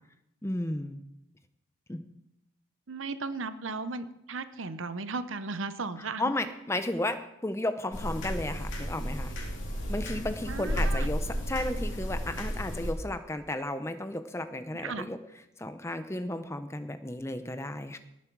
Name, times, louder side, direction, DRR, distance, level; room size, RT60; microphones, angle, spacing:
voice 1, 0.4-1.0 1.9-2.0 6.0-9.3 9.9-15.2 15.6-18.0, left 1 dB, 15° left, 10 dB, 0.6 m, -33 dB
voice 2, 2.9-6.3 10.5-11.1 14.7-15.0, right 4 dB, 70° right, 12 dB, 0.7 m, -36 dB
sound 1, 7.9-12.9, equal, 65° left, 2.6 m, -32 dB
18.5 x 7.3 x 4.6 m, 0.84 s
head